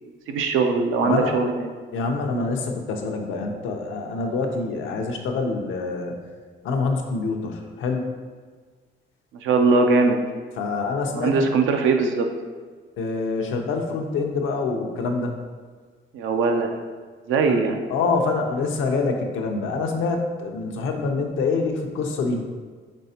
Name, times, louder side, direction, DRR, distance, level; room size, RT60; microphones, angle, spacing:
voice 1, 0.3-1.7 9.4-10.2 11.1-12.3 16.1-16.8 17.3-17.7, right 4 dB, 85° right, 4 dB, 0.5 m, -20 dB
voice 2, 1.9-6.2 6.6-8.1 10.6-11.3 13.0-15.4 17.5-17.6 17.9-22.5, left 4 dB, 80° left, 2 dB, 0.7 m, -26 dB
5.3 x 3.3 x 2.8 m, 1.5 s
cardioid pair, 90°, 20 cm